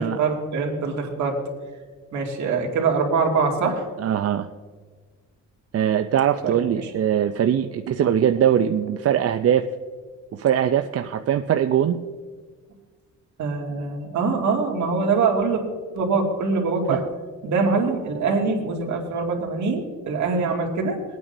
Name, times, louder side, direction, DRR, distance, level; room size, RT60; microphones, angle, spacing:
voice 1, 0.0-1.4 2.1-3.9 6.4-6.5 13.4-15.6 15.9-17.0 17.4-21.0, right 4 dB, 70° right, 0 dB, 2.4 m, -23 dB
voice 2, 4.0-4.5 5.7-9.7 10.3-12.0 16.9-17.0, right 9 dB, 50° right, 7 dB, 0.6 m, -21 dB
22.0 x 9.2 x 2.7 m, 1.5 s
cardioid pair, 90°, 30 cm